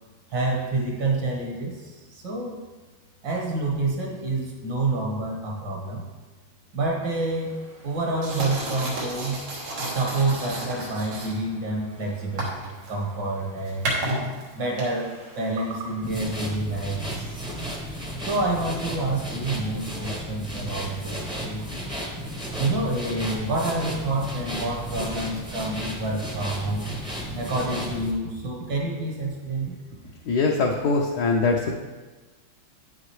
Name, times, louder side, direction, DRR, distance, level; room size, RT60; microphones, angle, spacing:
voice 1, 0.3-2.6 3.2-6.0 6.7-7.5 7.8-9.4 9.9-13.9 14.6-17.5 18.2-21.7 22.6-26.8 27.3-29.7, right 2 dB, 70° right, -1 dB, 2.1 m, -28 dB
sound 1, 7.2-16.5, right 1 dB, 90° right, 2.3 m, -34 dB
sound 2, 16.0-28.1, equal, 5° right, 0.6 m, -34 dB
voice 2, 30.3-31.7, left 3 dB, 65° left, 0 dB, 1.1 m, -22 dB
8.8 x 7.6 x 3.2 m, 1.3 s
omnidirectional pair, 2.1 m